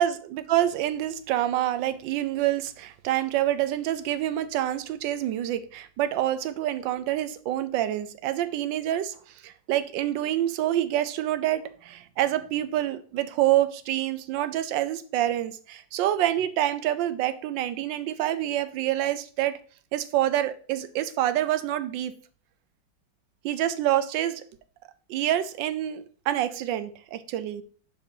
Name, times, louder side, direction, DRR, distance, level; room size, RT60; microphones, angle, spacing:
voice 1, 0.0-9.2 9.4-19.6 19.9-22.1 23.4-24.4 25.1-27.6, right 12 dB, 75° right, 1.2 m, -27 dB
6.6 x 5.3 x 2.7 m
omnidirectional pair, 2.1 m